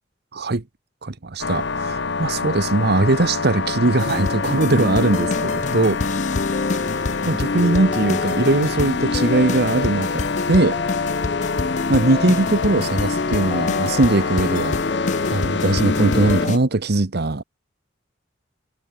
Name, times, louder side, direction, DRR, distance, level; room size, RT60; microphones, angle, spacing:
voice 1, 0.3-0.6 1.0-6.0 7.0-10.8 11.9-14.8 15.3-17.4, right 2 dB, 60° right, 1.1 m, -20 dB
sound 1, 1.4-16.5, left 4 dB, 65° left, 1.2 m, -26 dB
sound 2, 4.0-16.6, left 4 dB, 40° left, 0.5 m, -26 dB
head